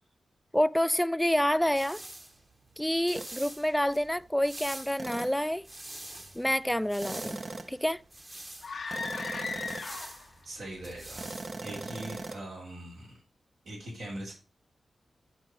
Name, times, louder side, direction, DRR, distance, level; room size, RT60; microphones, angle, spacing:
voice 1, 0.5-2.0 2.8-5.6 6.4-7.4 7.7-8.0, equal, 5° left, 0.3 m, -28 dB
sound 1, 1.3-12.3, right 1 dB, 30° right, 1.0 m, -47 dB
sound 2, 3.2-3.4 5.0-5.5 7.0-7.9 8.9-10.0 11.2-12.4, right 3 dB, 55° right, 0.7 m, -40 dB
sound 3, 8.6-10.4, left 4 dB, 70° left, 0.7 m, -36 dB
voice 2, 10.4-11.3 11.6-13.1 13.6-14.3, right 1 dB, 85° right, 2.9 m, -41 dB
6.2 x 4.1 x 5.0 m
cardioid pair, 50°, 0 cm